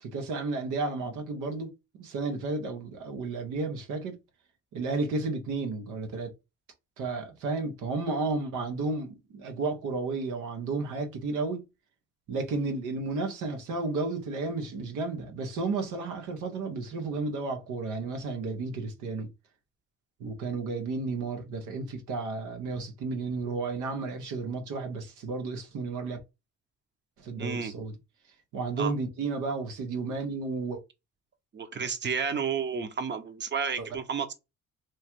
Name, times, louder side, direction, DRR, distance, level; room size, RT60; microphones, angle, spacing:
voice 1, 0.0-1.7 2.0-4.2 4.7-6.3 7.0-11.6 12.3-19.3 20.2-26.2 27.2-27.9 28.5-30.8 33.8-33.9, right 3 dB, 90° right, 1.0 m, -32 dB
voice 2, 27.4-27.7 28.8-28.9 31.5-34.3, right 6 dB, 35° right, 0.8 m, -31 dB
3.2 x 2.3 x 4.4 m
cardioid pair, 90°, 30 cm